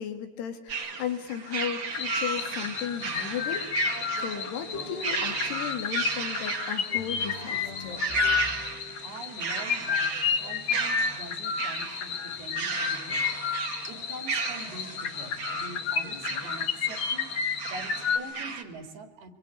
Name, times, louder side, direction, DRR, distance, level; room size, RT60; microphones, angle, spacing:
voice 1, 0.0-8.1, left 8 dB, 90° left, 7 dB, 4.6 m, -35 dB
sound 1, 0.7-18.6, right 5 dB, 40° right, 2.1 m, -35 dB
sound 2, 1.9-18.2, left 6 dB, 55° left, 1.4 m, -31 dB
sound 3, 3.8-6.1 6.9-10.2, equal, 15° left, 2.5 m, -46 dB
voice 2, 9.0-13.4 13.7-17.3 17.7-19.3, right 2 dB, 75° right, 8 dB, 4.3 m, -44 dB
25.0 x 25.0 x 8.5 m, 1.1 s
omnidirectional pair, 4.6 m